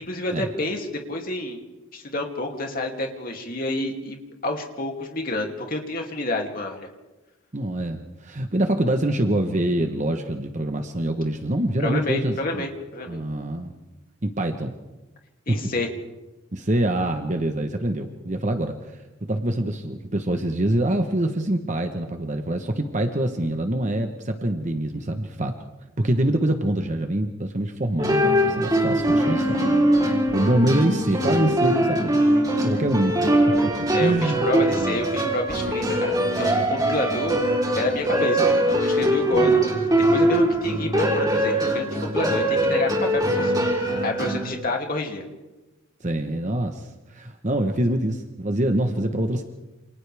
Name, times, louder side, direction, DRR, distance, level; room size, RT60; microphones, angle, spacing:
voice 1, 0.1-1.6 1.9-4.2 4.4-6.9 11.8-13.2 15.5-15.9 33.9-37.4 37.7-39.7 40.1-45.2, left 2 dB, 45° left, 2 dB, 2.8 m, -29 dB
voice 2, 7.5-12.7 13.1-13.7 14.2-14.8 15.5-15.6 16.5-18.8 19.3-25.5 26.0-29.6 30.3-32.3 32.6-33.2 33.6-33.7 34.0-34.5 34.8-35.1 39.3-39.7 46.0-49.4, right 1 dB, 35° right, 5 dB, 1.1 m, -25 dB
sound 1, 28.0-44.5, right 1 dB, 20° right, 3.8 m, -22 dB
28.5 x 27.5 x 3.5 m, 1.1 s
head